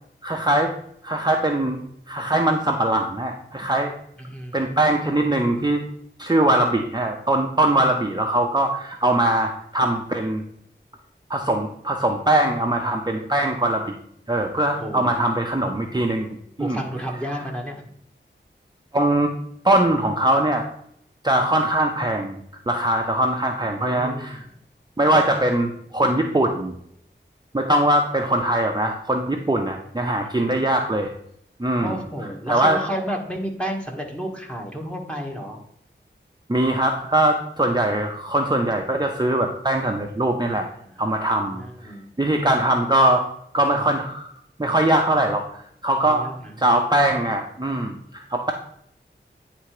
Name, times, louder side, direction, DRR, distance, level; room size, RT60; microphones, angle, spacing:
voice 1, 0.2-0.7 1.0-1.8 2.1-3.9 4.5-5.8 6.2-10.4 11.3-13.9 14.3-16.3 16.6-16.8 18.9-19.3 19.6-20.7 21.2-24.4 25.0-26.7 27.5-31.1 31.6-32.0 32.5-32.8 36.5-40.7 41.0-43.3 43.5-44.3 44.6-46.3 46.6-48.5, right 1 dB, 20° right, 2 dB, 0.7 m, -21 dB
voice 2, 4.2-5.1 14.6-15.4 16.6-17.9 23.6-24.4 30.2-30.7 31.8-35.6 40.8-41.1 41.5-42.1 46.1-46.6, equal, 5° left, 0 dB, 1.5 m, -32 dB
9.5 x 3.4 x 4.9 m, 0.70 s
wide cardioid pair, 60°, 20 cm